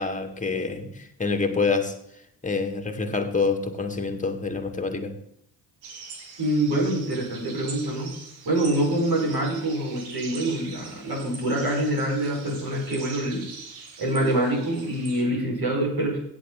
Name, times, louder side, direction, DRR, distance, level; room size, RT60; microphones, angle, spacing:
voice 1, 0.0-2.0 2.4-5.2, left 4 dB, 15° left, 5 dB, 2.1 m, -27 dB
sound 1, 5.8-15.2, right 4 dB, 70° right, 2.0 m, -43 dB
voice 2, 6.4-8.1 8.4-13.5 14.0-16.2, right 1 dB, 55° right, -2 dB, 5.0 m, -25 dB
16.5 x 8.3 x 4.0 m, 0.71 s
figure-of-eight pair, 45°, 46 cm